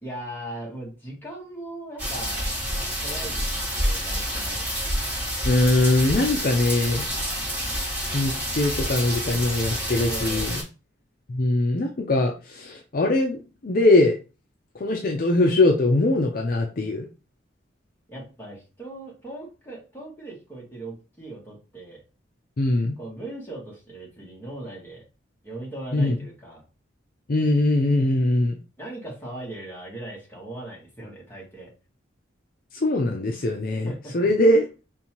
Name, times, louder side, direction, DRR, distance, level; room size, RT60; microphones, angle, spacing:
voice 1, 0.0-2.5 2.9-3.5 3.7-4.6 9.9-10.6 18.1-22.0 23.0-25.0 25.4-26.6 28.8-31.7 33.8-34.3, right 2 dB, 10° left, -4 dB, 1.5 m, -38 dB
sound 1, 2.0-10.6, equal, 10° right, 1.4 m, -28 dB
voice 2, 5.4-7.0 8.1-10.6 11.3-14.1 14.8-17.1 22.6-22.9 25.9-26.2 27.3-28.6 32.7-34.6, left 2 dB, 45° left, 2 dB, 0.5 m, -21 dB
5.3 x 2.6 x 2.9 m, 0.32 s
head